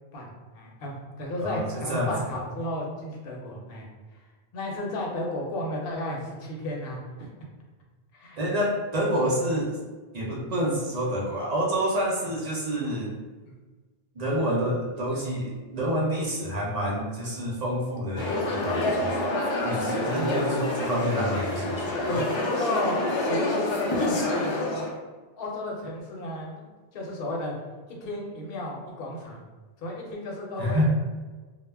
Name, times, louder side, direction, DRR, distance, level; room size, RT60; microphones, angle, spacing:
voice 1, 0.5-3.8 4.5-7.3 8.1-8.4 12.2-12.3 12.9-13.0 20.1-20.7 22.0-23.0 23.3-24.9 25.4-26.7 26.9-27.5 28.0-29.4 29.8-30.9, left 1 dB, 70° left, -1 dB, 0.8 m, -33 dB
voice 2, 1.4-2.4 8.4-9.8 10.1-13.1 14.2-19.2 19.6-22.2 30.6-30.9, equal, 50° right, -4 dB, 0.5 m, -28 dB
sound 1, 18.2-24.9, left 1 dB, 50° left, 0.3 m, -27 dB
2.1 x 2.0 x 3.3 m, 1.3 s
omnidirectional pair, 1.0 m